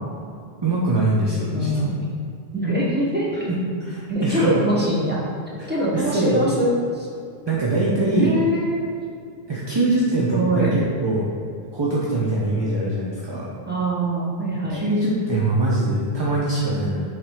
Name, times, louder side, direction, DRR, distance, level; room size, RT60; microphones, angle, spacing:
voice 1, 0.6-1.7 3.5-4.6 5.6-6.4 7.5-8.3 9.5-11.3 11.7-13.5 14.7-17.0, right 2 dB, 30° right, -5 dB, 0.7 m, -22 dB
voice 2, 1.5-2.0 2.5-3.3 4.1-5.2 5.7-7.1 8.1-8.9 10.2-10.8 13.6-14.8, equal, 10° right, -5 dB, 1.2 m, -23 dB
7.0 x 3.4 x 4.7 m, 2.4 s
omnidirectional pair, 1.1 m